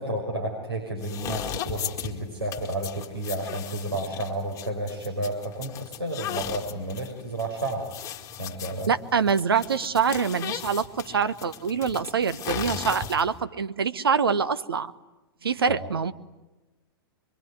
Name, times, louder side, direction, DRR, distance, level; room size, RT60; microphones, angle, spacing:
voice 1, 0.0-7.9 8.4-8.9 15.7-15.8, right 1 dB, 90° right, -1 dB, 5.8 m, -31 dB
sound 1, 1.0-13.4, left 9 dB, 25° left, 2.2 m, -37 dB
voice 2, 8.9-14.9 15.4-16.1, right 6 dB, 70° right, 12 dB, 1.2 m, -25 dB
25.5 x 24.0 x 9.6 m, 1.1 s
figure-of-eight pair, 105°, 13 cm